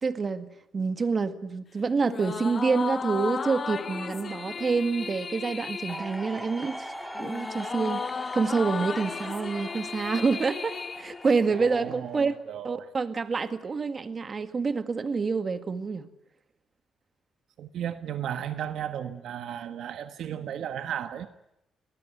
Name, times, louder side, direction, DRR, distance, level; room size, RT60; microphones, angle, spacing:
voice 1, 0.0-6.9 7.2-12.4 12.6-16.1, right 4 dB, 35° right, 1.9 m, -27 dB
sound 1, 2.0-11.7, left 5 dB, 40° left, 1.0 m, -35 dB
sound 2, 5.9-12.4, equal, ahead, 3.1 m, -41 dB
voice 2, 11.6-12.9 17.6-21.3, right 9 dB, 70° right, 1.5 m, -35 dB
26.5 x 19.5 x 9.4 m
cardioid pair, 90°, 0 cm